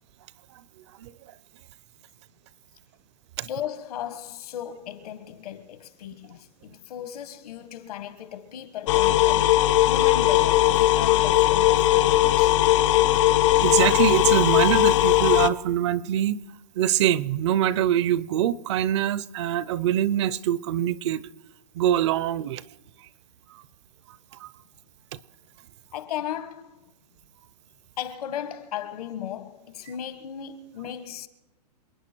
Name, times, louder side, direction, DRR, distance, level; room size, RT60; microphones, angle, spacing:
voice 1, 3.4-12.6 25.9-26.8 28.0-31.3, left 10 dB, 60° left, 1.5 m, -36 dB
sound 1, 8.9-15.5, left 16 dB, 45° left, 0.6 m, -19 dB
voice 2, 13.6-16.4 16.7-21.2 21.7-22.6 24.4-24.5, right 11 dB, 45° right, 0.6 m, -24 dB
28.5 x 9.6 x 4.5 m
hypercardioid pair, 150°, 21 cm